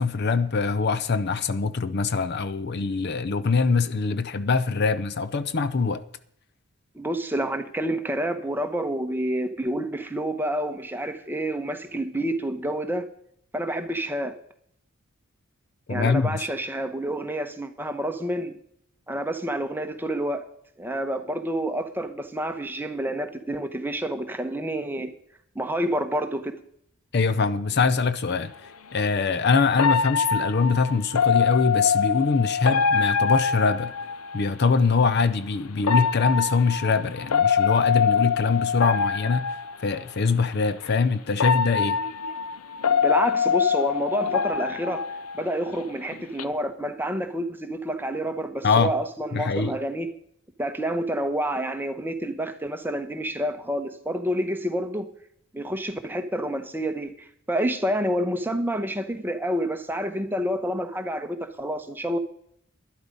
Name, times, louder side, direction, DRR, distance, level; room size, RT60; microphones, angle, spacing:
voice 1, 0.0-6.0 15.9-16.4 27.1-28.5 28.9-33.9 34.3-39.5 39.8-42.0 48.6-48.9 49.3-49.7, left 4 dB, 50° left, 0.6 m, -23 dB
voice 2, 6.9-13.1 13.5-14.3 15.9-18.6 19.1-20.4 20.8-25.1 25.5-26.5 42.9-45.0 45.3-50.1 50.6-55.1 55.5-62.2, right 1 dB, 10° right, 0.9 m, -28 dB
sound 1, 28.3-28.4 29.8-34.5 35.8-40.0 40.8-40.9 41.4-45.8 46.1-46.4, left 6 dB, 85° left, 0.7 m, -24 dB
12.0 x 11.5 x 5.3 m
head